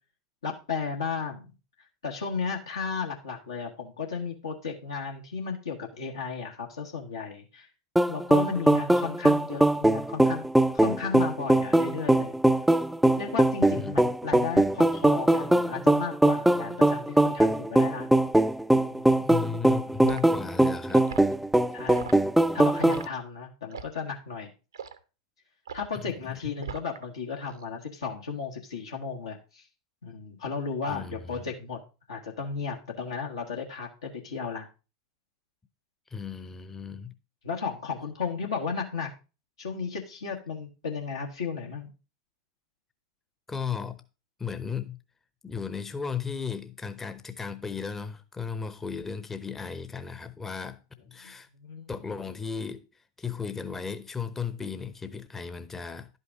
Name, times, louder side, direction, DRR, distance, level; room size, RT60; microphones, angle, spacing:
voice 1, 0.4-1.5 2.0-7.7 8.1-10.4 10.7-12.4 13.2-18.1 18.9-19.2 21.7-22.1 22.5-24.5 25.7-29.7 30.0-31.8 32.1-34.7 37.4-39.1 39.6-41.9 51.2-51.3 51.6-52.2, left 5 dB, 75° left, 1.3 m, -34 dB
sound 1, 8.0-23.1, right 1 dB, 5° right, 0.4 m, -22 dB
voice 2, 19.0-21.1 26.0-26.4 30.9-31.2 36.1-37.1 43.5-44.0 44.4-45.0 45.4-50.8 51.1-51.5 51.9-56.2, left 6 dB, 15° left, 0.8 m, -35 dB
Liquid, 20.1-20.3 20.9-21.2 21.9-22.2 22.8-23.1 23.7-24.0 24.7-25.0 25.7-25.9 26.6-27.0 27.4-27.7, right 7 dB, 75° right, 0.8 m, -39 dB
11.0 x 5.5 x 4.6 m
figure-of-eight pair, 85°, 2 cm